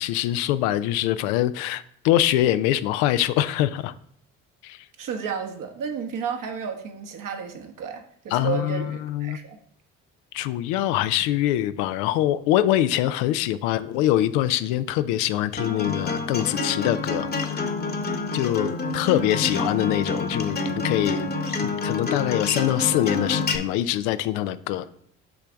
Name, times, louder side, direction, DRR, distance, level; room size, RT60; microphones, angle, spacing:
voice 1, 0.0-3.9 4.6-4.8 8.3-9.4 10.3-17.7 18.3-21.3 21.6-24.8, left 13 dB, 80° left, 0.5 m, -24 dB
voice 2, 5.0-9.6, right 7 dB, 55° right, 1.2 m, -32 dB
Acoustic guitar, 15.6-23.6, left 3 dB, 25° left, 1.0 m, -28 dB
5.9 x 3.3 x 5.1 m
hypercardioid pair, 55°, 37 cm